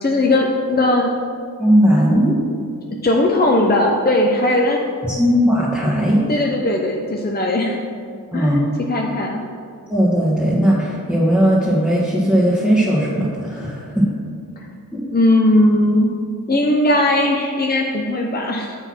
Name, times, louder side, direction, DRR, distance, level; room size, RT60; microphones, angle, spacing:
voice 1, 0.0-1.1 3.0-4.8 6.3-7.8 8.3-8.6 8.9-9.4 14.6-14.7 15.1-16.1 16.5-18.8, left 1 dB, 25° left, 0 dB, 0.8 m, -18 dB
voice 2, 1.6-2.4 5.0-6.3 8.3-8.6 9.9-14.1 14.9-15.0, equal, 5° right, -8 dB, 1.7 m, -17 dB
6.7 x 4.2 x 6.1 m, 2.2 s
cardioid pair, 50°, 37 cm